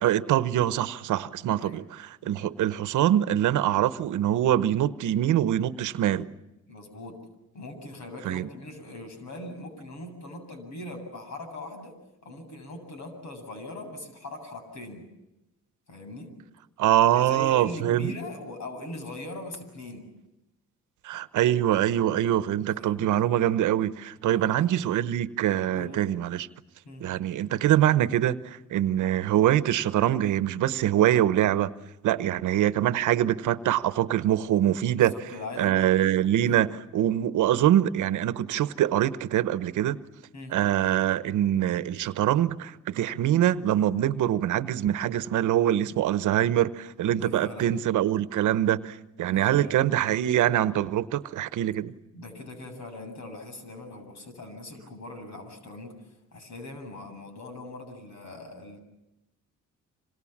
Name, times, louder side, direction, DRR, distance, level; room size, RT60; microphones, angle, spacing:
voice 1, 0.0-1.8 2.2-6.3 8.2-8.5 16.8-18.1 21.0-26.5 27.0-31.7 32.0-35.1 35.6-40.0 40.5-51.9, right 12 dB, 80° right, 14 dB, 1.0 m, -24 dB
voice 2, 6.7-7.3 7.5-12.0 12.2-15.1 15.9-16.3 17.1-20.1 22.8-23.1 24.2-24.6 25.7-26.0 26.8-27.1 34.9-36.6 40.3-40.6 47.1-47.8 49.3-49.8 52.1-55.9 56.3-58.8, left 2 dB, 65° left, 7 dB, 7.8 m, -41 dB
27.0 x 27.0 x 7.4 m, 0.94 s
cardioid pair, 90°, 30 cm